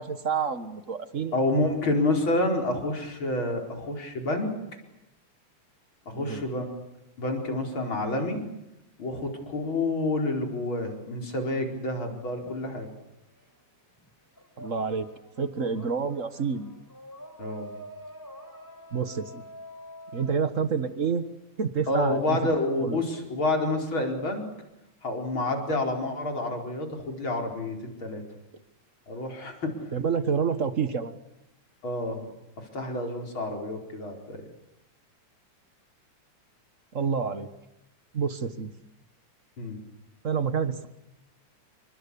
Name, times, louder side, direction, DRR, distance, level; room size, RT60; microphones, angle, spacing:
voice 1, 0.0-1.3 6.1-6.4 14.6-15.1 15.4-16.7 18.9-19.4 20.1-21.2 21.6-22.4 22.8-23.0 29.9-31.2 36.9-37.5 38.1-38.7 40.2-40.9, right 6 dB, 40° right, 11 dB, 1.1 m, -28 dB
voice 2, 1.3-4.6 6.1-6.7 7.2-8.4 9.0-12.9 17.4-17.7 21.9-24.5 25.0-28.2 29.1-29.8 31.8-32.3 32.7-34.4 39.6-39.8, left 2 dB, 40° left, 3 dB, 5.4 m, -28 dB
sound 1, 12.4-13.6 13.9-21.7, equal, 5° left, 4.4 m, -47 dB
28.0 x 24.5 x 8.6 m, 0.90 s
omnidirectional pair, 3.3 m